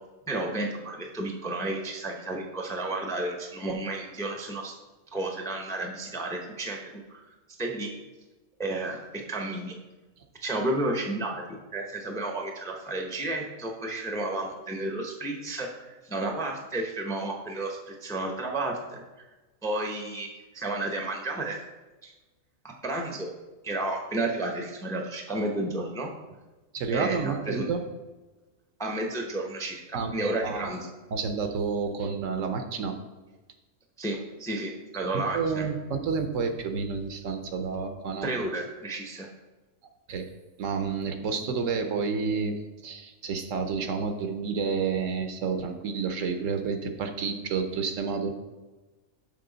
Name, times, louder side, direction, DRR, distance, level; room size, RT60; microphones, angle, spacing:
voice 1, 0.3-4.7 5.1-7.2 7.6-7.9 8.6-9.8 10.4-19.0 19.6-21.6 22.0-22.1 22.6-23.3 23.6-26.1 26.9-27.6 28.8-30.8 34.0-35.6 38.2-39.3, right 2 dB, 5° left, 2 dB, 0.5 m, -32 dB
voice 2, 26.7-27.8 29.9-30.7 31.1-33.0 35.1-38.5 40.1-40.2 40.6-48.3, right 5 dB, 70° right, 7 dB, 1.0 m, -30 dB
6.7 x 5.8 x 3.9 m, 1.2 s
omnidirectional pair, 1.4 m